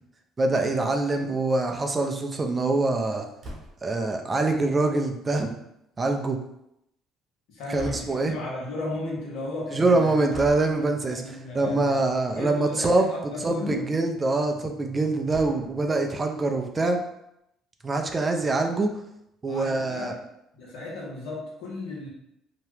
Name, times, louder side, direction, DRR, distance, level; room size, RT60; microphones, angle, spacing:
voice 1, 0.4-3.3 3.8-5.5 6.0-6.4 7.7-8.3 9.7-11.2 11.5-13.1 13.4-17.0 17.8-18.9 19.4-20.1, right 2 dB, 25° right, 4 dB, 0.4 m, -24 dB
sound 1, 3.4-4.0 7.7-8.3 10.3-10.7 12.0-12.2 12.6-12.7 12.9-13.0 15.3-15.9, right 1 dB, 45° right, 1.0 m, -40 dB
voice 2, 7.5-10.3 11.1-12.0 12.3-13.8 18.5-18.6 19.5-20.2 20.5-22.1, left 2 dB, 80° left, -4 dB, 1.1 m, -35 dB
2.8 x 2.2 x 3.2 m, 0.81 s
supercardioid pair, 80°, 0 cm